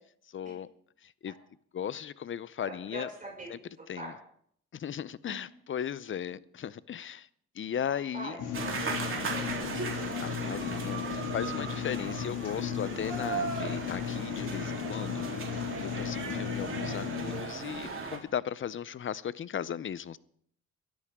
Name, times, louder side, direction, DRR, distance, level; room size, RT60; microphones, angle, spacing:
voice 1, 0.3-0.7 1.0-1.3 1.7-3.1 3.5-3.6 3.9-4.1 4.7-7.3 7.5-8.4 10.2-15.3 15.8-20.2, left 9 dB, 40° left, 0.7 m, -37 dB
voice 2, 2.6-3.5 4.0-4.1 5.3-5.5 7.7-9.9 12.0-12.5, right 1 dB, 25° right, 6.1 m, -44 dB
sound 1, 8.4-17.4, left 9 dB, 85° left, 2.2 m, -36 dB
sound 2, 8.5-18.2, right 5 dB, 45° right, 3.4 m, -37 dB
22.0 x 13.5 x 3.7 m
cardioid pair, 90°, 30 cm